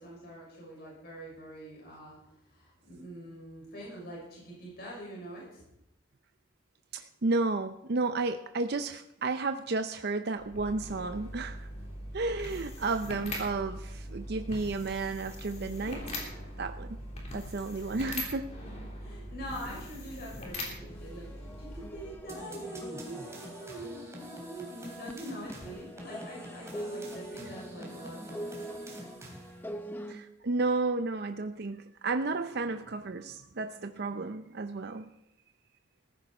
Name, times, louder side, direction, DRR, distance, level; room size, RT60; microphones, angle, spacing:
voice 1, 0.0-5.6 19.0-28.6, right 1 dB, 50° left, -3 dB, 5.9 m, -44 dB
voice 2, 6.9-11.7 12.1-16.1 16.6-16.9 17.3-18.6 30.1-35.1, right 3 dB, 55° right, 8 dB, 0.6 m, -32 dB
sound 1, 10.3-22.3, left 1 dB, 35° left, 3.5 m, -41 dB
sound 2, 20.8-25.1 25.5-30.1, equal, 10° left, 0.9 m, -44 dB
sound 3, 22.3-29.7, right 1 dB, 15° right, 3.3 m, -46 dB
15.0 x 14.5 x 4.3 m, 0.81 s
head